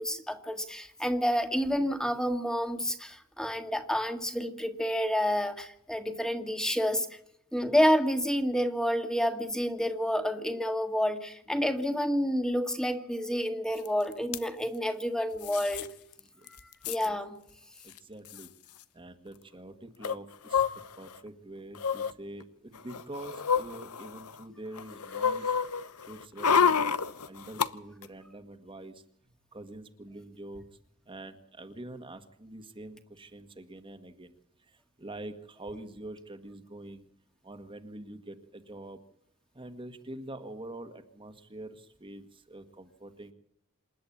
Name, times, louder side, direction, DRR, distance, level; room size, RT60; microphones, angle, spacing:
voice 1, 0.0-7.2 7.5-15.9 16.5-17.4, equal, 5° left, 6 dB, 1.9 m, -29 dB
sound 1, 13.9-14.0 14.1-14.4 15.4-15.9 16.2-16.3 16.5-17.1 17.9-18.0 18.3-18.5 20.0-21.2 21.8-22.1 22.8-24.4 24.8-27.7 28.0-28.1, left 6 dB, 85° left, 0.9 m, -29 dB
voice 2, 17.8-18.5 18.9-25.5 26.0-26.9 27.2-29.0 29.5-30.6 31.1-34.4 34.6-37.1 37.4-39.0 39.5-43.3, right 1 dB, 25° right, 7 dB, 1.7 m, -45 dB
27.5 x 11.0 x 8.6 m, 0.73 s
head